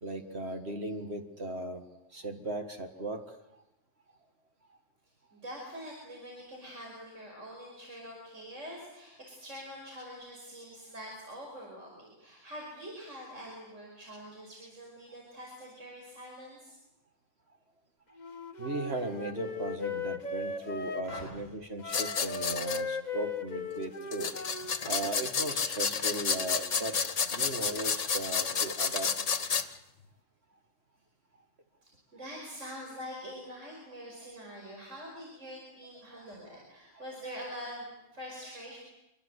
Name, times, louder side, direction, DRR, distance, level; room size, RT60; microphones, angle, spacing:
voice 1, 0.0-1.8 2.1-3.2 18.6-24.3 24.9-29.1 37.0-37.1, right 2 dB, 55° right, 5 dB, 2.1 m, -37 dB
voice 2, 5.3-16.8 21.1-21.2 31.8-38.8, equal, 75° right, -1 dB, 5.9 m, -45 dB
Wind instrument woodwind instrument, 18.2-21.3 21.8-25.1, left 4 dB, 35° left, 1.4 m, -38 dB
sound 1, 21.9-22.8 24.1-29.6, left 6 dB, 70° left, 1.6 m, -31 dB
26.0 x 23.5 x 8.2 m, 0.94 s
omnidirectional pair, 1.3 m